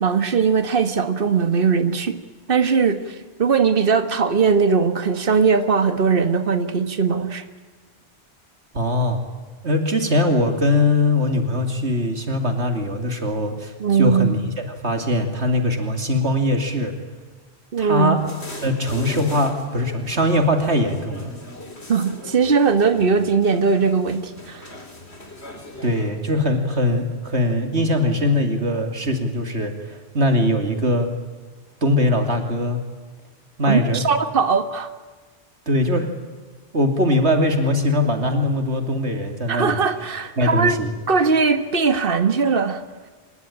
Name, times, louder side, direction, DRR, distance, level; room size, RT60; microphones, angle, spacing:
voice 1, 0.0-2.2 2.5-7.4 13.8-14.4 17.7-18.2 21.9-24.7 33.6-34.9 39.5-40.8 41.1-42.8, right 5 dB, 55° right, 9 dB, 1.7 m, -19 dB
voice 2, 8.7-9.2 9.6-14.5 14.8-16.9 17.8-18.2 18.6-21.3 25.8-31.1 31.8-32.8 33.6-34.0 35.7-36.1 36.7-39.8 40.4-40.9, left 1 dB, 80° right, 5 dB, 3.0 m, -21 dB
sound 1, 18.2-26.1, left 2 dB, 70° left, 4.2 m, -39 dB
26.5 x 21.5 x 10.0 m, 1.4 s
omnidirectional pair, 1.1 m